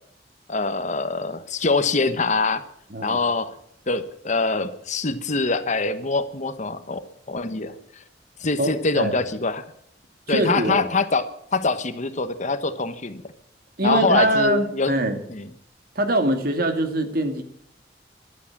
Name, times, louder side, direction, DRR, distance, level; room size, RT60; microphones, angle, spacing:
voice 1, 0.5-2.6 3.0-3.5 3.9-7.0 7.3-8.0 8.4-9.6 10.3-11.2 11.5-13.2 13.8-14.9 15.3-15.5, left 3 dB, 45° left, 11 dB, 1.1 m, -24 dB
voice 2, 8.6-9.2 10.3-10.9 13.8-15.2 16.0-17.4, right 1 dB, 60° right, 7 dB, 2.3 m, -23 dB
15.0 x 12.5 x 7.4 m, 0.71 s
head